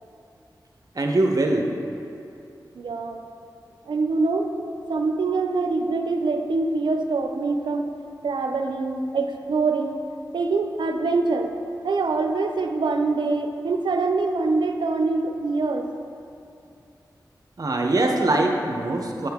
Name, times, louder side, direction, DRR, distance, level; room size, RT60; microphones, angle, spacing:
voice 1, 0.9-1.7 17.6-19.3, right 2 dB, 50° right, 2 dB, 0.7 m, -22 dB
voice 2, 2.7-3.2 3.9-4.5 4.9-7.9 8.2-10.0 10.3-11.5 11.8-15.9, right 3 dB, 90° right, 5 dB, 0.5 m, -24 dB
7.6 x 6.8 x 3.6 m, 2.6 s
wide cardioid pair, 95°, 8 cm